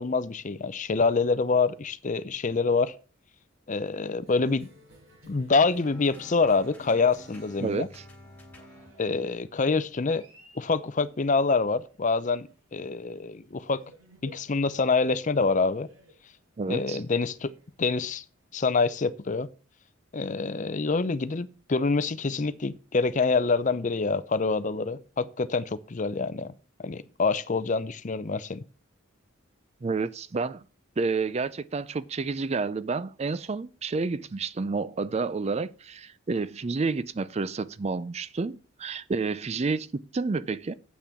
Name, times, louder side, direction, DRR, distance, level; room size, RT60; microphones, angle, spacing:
voice 1, 0.0-2.9 3.7-4.7 5.3-7.9 9.0-10.2 10.6-13.8 14.2-15.9 16.7-17.5 17.8-18.2 18.5-19.5 20.1-26.5 26.8-28.6, left 4 dB, 40° left, 0.5 m, -26 dB
Cheering, 4.2-19.4, equal, 80° right, 6.1 m, -56 dB
sound 1, 5.8-9.0, equal, 10° left, 3.3 m, -50 dB
voice 2, 7.6-8.0 16.6-17.0 29.8-30.6 31.0-40.7, right 4 dB, 30° right, 0.4 m, -30 dB
8.4 x 6.0 x 6.8 m
head